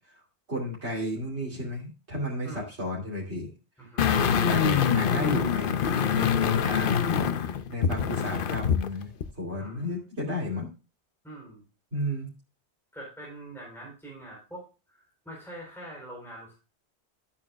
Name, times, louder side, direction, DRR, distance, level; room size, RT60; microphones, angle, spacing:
voice 1, 0.5-3.5 4.1-5.8 6.1-7.4 7.7-9.1 9.4-10.7 11.9-12.3, left 1 dB, 75° right, -5 dB, 3.0 m, -33 dB
voice 2, 3.8-4.1 9.6-9.9 11.2-11.6 12.9-16.5, right 1 dB, ahead, -4 dB, 4.1 m, -44 dB
sound 1, 4.0-8.9 9.2-9.3, left 7 dB, 55° left, 0.8 m, -25 dB
12.5 x 8.6 x 2.4 m, 0.31 s
omnidirectional pair, 1.1 m